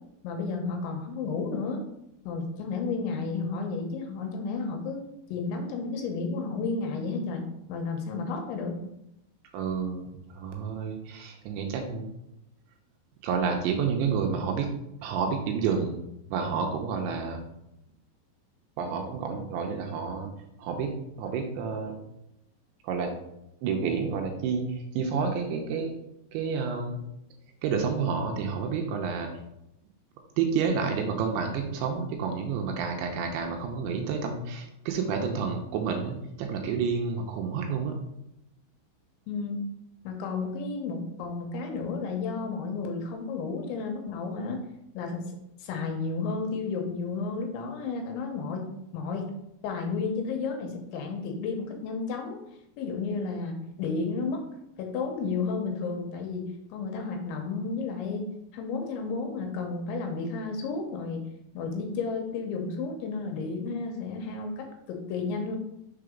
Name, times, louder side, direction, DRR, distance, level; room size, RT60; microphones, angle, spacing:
voice 1, 0.2-1.8 2.3-5.0 5.3-8.8 39.3-39.6 40.0-44.6 44.9-45.3 45.6-48.7 48.9-49.3 49.6-52.4 52.8-54.4 54.8-58.3 58.5-61.2 61.5-65.6, left 4 dB, 80° left, 3 dB, 3.1 m, -32 dB
voice 2, 9.5-10.1 10.3-12.1 13.2-14.7 15.0-16.0 16.3-17.5 18.8-20.3 20.6-20.9 21.2-22.0 22.8-23.1 23.6-25.9 26.3-27.0 27.6-29.3 30.4-38.0, right 5 dB, 80° right, 2 dB, 2.9 m, -29 dB
6.8 x 3.9 x 5.1 m, 0.83 s
omnidirectional pair, 5.5 m